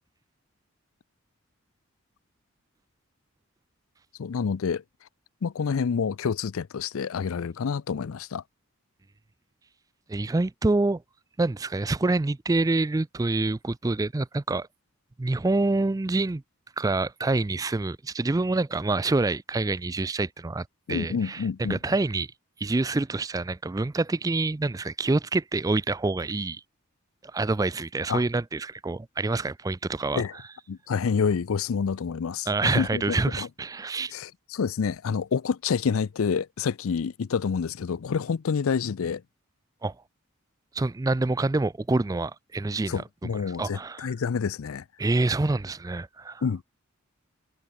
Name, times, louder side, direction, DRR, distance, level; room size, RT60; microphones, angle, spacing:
voice 1, 4.2-4.8 5.4-8.4 20.9-21.8 28.1-28.2 30.1-30.3 30.7-33.5 34.1-39.2 42.9-44.8 46.4-46.6, left 6 dB, 70° left, 0.4 m, -28 dB
voice 2, 10.1-11.0 11.4-14.7 15.2-16.4 16.8-22.3 22.6-26.6 27.3-30.4 32.5-34.1 39.8-40.0 40.7-43.0 43.3-44.1 45.0-46.4, right 2 dB, 15° right, 0.3 m, -26 dB
head